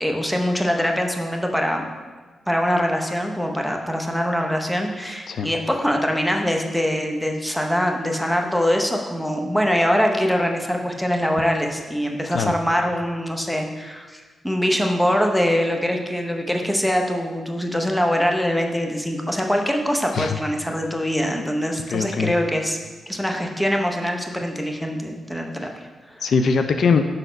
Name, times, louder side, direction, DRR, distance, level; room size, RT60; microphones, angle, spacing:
voice 1, 0.0-1.9 2.5-22.8 23.1-26.2, equal, 5° left, 2 dB, 0.7 m, -23 dB
voice 2, 21.9-22.3 26.2-27.0, left 5 dB, 70° left, 7 dB, 0.3 m, -21 dB
5.5 x 4.1 x 5.0 m, 1.4 s
cardioid pair, 80°, 0 cm